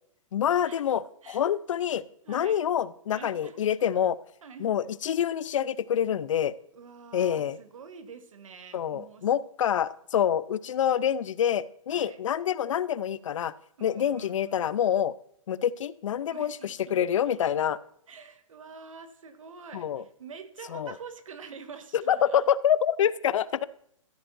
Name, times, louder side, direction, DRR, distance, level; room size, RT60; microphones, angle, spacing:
voice 1, 0.3-2.0 2.3-4.2 4.6-6.5 7.1-7.6 8.7-13.5 13.8-15.1 15.5-17.8 19.7-20.0 20.7-20.9 21.9-23.6, left 9 dB, 65° left, 19 dB, 0.5 m, -26 dB
voice 2, 2.2-2.6 3.1-3.7 4.4-4.7 6.7-9.3 11.9-12.2 13.8-14.7 16.3-17.4 18.1-22.4, right 5 dB, 75° right, 9 dB, 1.5 m, -46 dB
13.5 x 8.9 x 2.6 m, 0.69 s
hypercardioid pair, 145°, 17 cm